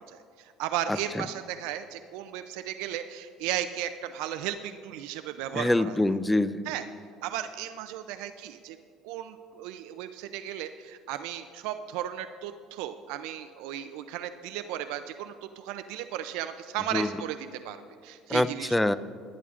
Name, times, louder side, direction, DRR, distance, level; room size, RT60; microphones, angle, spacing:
voice 1, 0.0-6.0 6.7-6.8 7.2-8.8 9.0-17.8 18.0-18.8, right 11 dB, 80° right, 9 dB, 0.4 m, -35 dB
voice 2, 0.9-1.3 5.5-6.7 16.9-17.1 18.3-19.0, left 1 dB, 5° left, 15 dB, 0.4 m, -25 dB
19.5 x 10.5 x 2.5 m, 2.3 s
cardioid pair, 110°, 0 cm